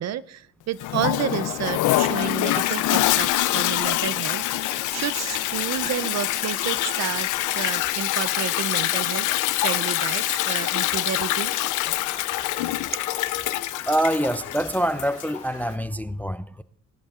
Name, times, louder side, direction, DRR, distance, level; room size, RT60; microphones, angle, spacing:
voice 1, 0.0-7.3 7.5-9.3 9.6-11.5, right 10 dB, 60° right, 0.5 m, -30 dB
Toilet flush, 0.8-15.4, left 15 dB, 80° left, 0.5 m, -25 dB
sound 1, 3.7-15.8, left 3 dB, 25° left, 2.8 m, -45 dB
voice 2, 13.9-16.6, right 1 dB, 5° left, 0.3 m, -25 dB
18.5 x 11.0 x 2.4 m
cardioid pair, 90°, 30 cm